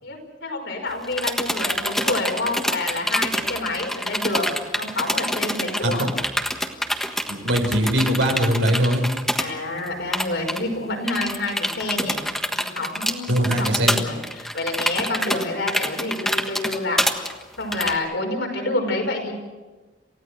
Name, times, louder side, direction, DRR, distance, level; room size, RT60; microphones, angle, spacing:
voice 1, 0.0-6.0 9.4-12.2 12.6-17.0 17.6-19.3, left 2 dB, 75° left, 1 dB, 5.4 m, -28 dB
sound 1, 0.9-9.5 9.8-9.9 10.1-10.6 11.1-17.9, equal, ahead, 1.4 m, -26 dB
voice 2, 5.8-6.1 7.3-9.1 13.3-13.9, equal, 85° right, 3 dB, 5.0 m, -21 dB
28.5 x 16.5 x 6.5 m, 1.3 s
head